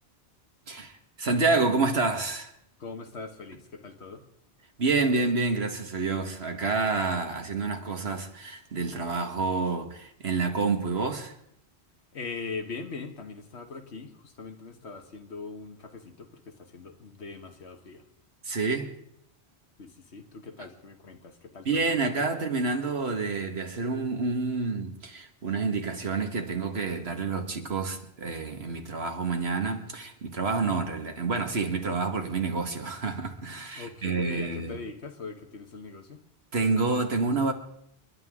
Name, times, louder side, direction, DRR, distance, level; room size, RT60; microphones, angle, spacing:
voice 1, 0.7-2.5 4.8-11.3 18.4-18.9 21.7-34.8 36.5-37.5, right 4 dB, 70° right, 1.9 m, -28 dB
voice 2, 2.8-4.2 12.1-18.0 19.8-21.9 33.7-36.2, left 4 dB, 80° left, 1.7 m, -41 dB
29.5 x 11.0 x 3.7 m
omnidirectional pair, 1.1 m